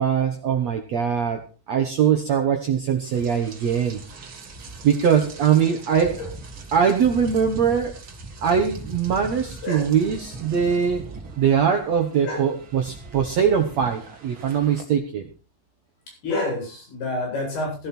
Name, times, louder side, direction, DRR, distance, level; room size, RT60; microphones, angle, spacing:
voice 1, 0.0-1.4 1.7-4.0 4.8-6.2 6.7-8.0 8.4-11.0 11.4-15.3, right 7 dB, 80° right, 5 dB, 1.5 m, -21 dB
Rain, 3.0-14.8, right 3 dB, 40° right, 2.2 m, -40 dB
voice 2, 9.6-9.9 12.2-12.4 16.2-17.9, left 2 dB, 55° left, 0 dB, 10.0 m, -28 dB
17.0 x 12.0 x 4.5 m, 0.33 s
omnidirectional pair, 5.2 m